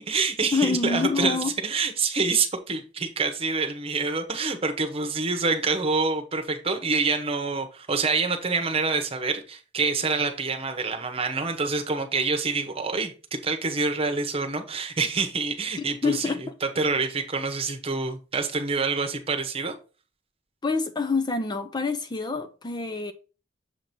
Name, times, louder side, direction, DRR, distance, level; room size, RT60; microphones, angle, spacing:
voice 1, 0.0-1.4 1.6-19.7, right 4 dB, 30° right, 1.0 m, -26 dB
voice 2, 0.5-1.5 16.0-16.5 20.6-23.1, left 4 dB, 20° left, 0.4 m, -26 dB
7.1 x 2.9 x 5.2 m
head